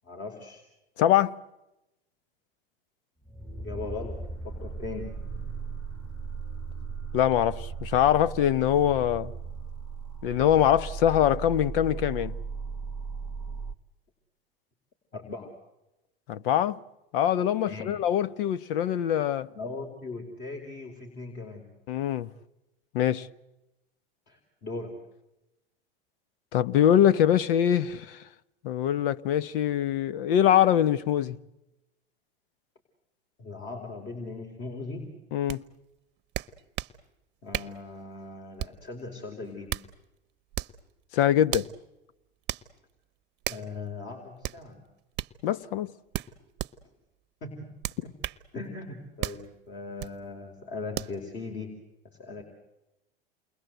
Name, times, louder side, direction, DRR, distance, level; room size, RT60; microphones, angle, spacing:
voice 1, 0.0-0.6 3.6-5.1 15.1-15.5 17.7-18.0 19.5-21.7 24.3-25.0 33.4-35.1 37.4-39.8 43.5-44.8 47.4-47.6 48.0-48.1 48.5-51.8 52.2-52.4, left 3 dB, 40° left, 4.8 m, -39 dB
voice 2, 1.0-1.4 7.1-9.3 10.2-12.4 16.3-16.8 17.1-19.5 21.9-22.3 22.9-23.3 26.5-28.2 28.6-31.4 35.3-35.6 41.1-41.7 45.4-45.9, left 10 dB, 65° left, 1.1 m, -23 dB
sound 1, 3.2-13.7, right 5 dB, ahead, 1.2 m, -37 dB
sound 2, 35.5-35.6 36.3-37.0 37.5-37.8 38.6-38.9 39.5-39.9 40.5-40.8 41.5-41.7 42.5-42.7 43.4-43.7 44.4-44.6 45.1-45.3 46.1-46.7 47.8-48.4 49.2-49.4 50.0-50.2 50.9-51.2, right 13 dB, 35° right, 0.9 m, -34 dB
29.0 x 22.0 x 8.0 m
hypercardioid pair, 100°, 29 cm